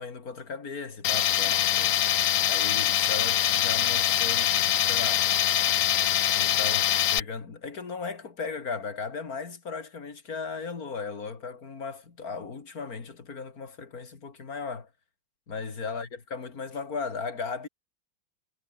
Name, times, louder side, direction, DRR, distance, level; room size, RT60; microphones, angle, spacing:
voice 1, 0.0-2.0 2.4-5.3 6.3-14.9 15.5-17.7, left 5 dB, 45° left, 3.0 m, -36 dB
Tools, 1.0-7.2, left 11 dB, 65° left, 0.8 m, -24 dB
omnidirectional pair, 2.2 m